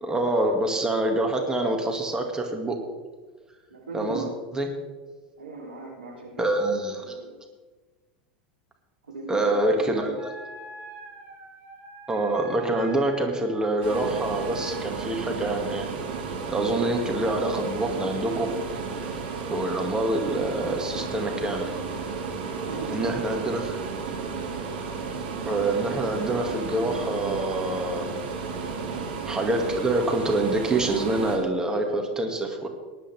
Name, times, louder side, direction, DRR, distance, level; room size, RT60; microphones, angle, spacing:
voice 1, 0.0-2.8 3.9-4.7 6.4-7.2 9.3-10.3 12.1-15.9 16.4-18.5 19.5-21.7 22.9-23.8 25.5-28.1 29.3-32.7, right 2 dB, 15° right, 2 dB, 2.4 m, -26 dB
voice 2, 3.7-4.5 5.4-6.5 7.0-7.3 9.1-10.1 22.6-23.4, right 3 dB, 90° right, -2 dB, 3.7 m, -38 dB
Wind instrument woodwind instrument, 10.1-15.0, right 2 dB, 45° right, 3.5 m, -44 dB
sound 1, 13.8-31.4, right 5 dB, 70° right, 2.7 m, -33 dB
19.0 x 11.0 x 3.6 m, 1.3 s
hypercardioid pair, 90°, 5 cm